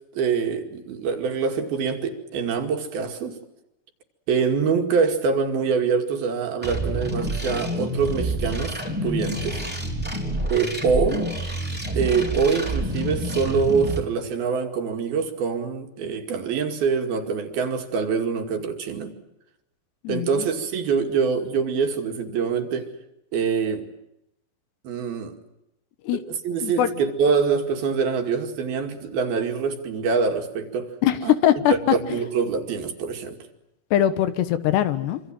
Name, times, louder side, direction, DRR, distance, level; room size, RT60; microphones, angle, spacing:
voice 1, 0.1-3.4 4.3-9.6 10.5-11.3 11.9-19.1 20.1-22.9 23.3-23.9 24.8-25.3 26.1-31.0 31.2-31.3 31.9-33.4, right 5 dB, 65° right, 4.0 m, -25 dB
sound 1, 6.6-14.0, right 1 dB, ahead, 3.5 m, -28 dB
voice 2, 20.1-20.5 26.1-26.2 26.6-26.9 31.0-31.7 32.1-32.2 33.9-35.2, left 11 dB, 80° left, 3.4 m, -21 dB
26.5 x 26.0 x 7.6 m
omnidirectional pair, 4.9 m